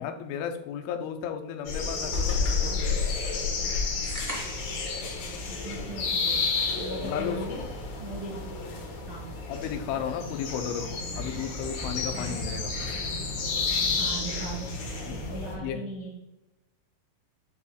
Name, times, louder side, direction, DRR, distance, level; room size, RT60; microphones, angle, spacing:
voice 1, 0.0-2.9 7.0-7.7 9.5-12.7 15.1-15.3 15.6-15.9, left 8 dB, 85° left, 5 dB, 3.1 m, -34 dB
sound 1, 1.7-15.6, left 4 dB, 60° left, 2.7 m, -31 dB
sound 2, 4.0-4.9, right 1 dB, 35° right, 0.5 m, -37 dB
voice 2, 5.5-7.6 8.0-8.5 9.0-9.4 12.1-12.4 14.0-14.7 15.1-16.2, right 2 dB, 75° right, -5 dB, 1.1 m, -39 dB
9.7 x 5.5 x 2.4 m, 0.95 s
omnidirectional pair, 5.4 m